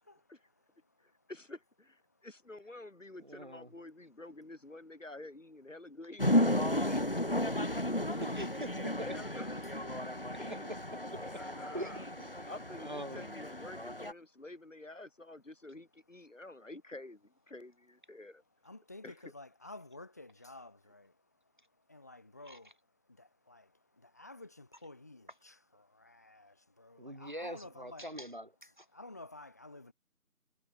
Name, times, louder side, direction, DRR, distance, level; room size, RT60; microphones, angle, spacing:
voice 1, 0.0-1.3 2.1-2.3 16.3-16.4 18.6-28.1 28.9-29.9, left 2 dB, 10° left, 5.1 m, -53 dB
voice 2, 1.3-6.5 6.8-7.0 7.7-8.4 8.9-10.1 10.4-10.6 11.2-12.0 12.5-18.4 19.0-19.1, left 2 dB, 55° left, 2.1 m, -49 dB
voice 3, 3.2-3.7 8.2-9.1 10.4-10.8 11.1-11.4 11.7-13.2 22.5-22.6 27.0-28.9, equal, 35° right, 2.5 m, -44 dB
sound 1, 6.2-14.1, left 1 dB, 40° left, 1.8 m, -33 dB
figure-of-eight pair, 175°, 44 cm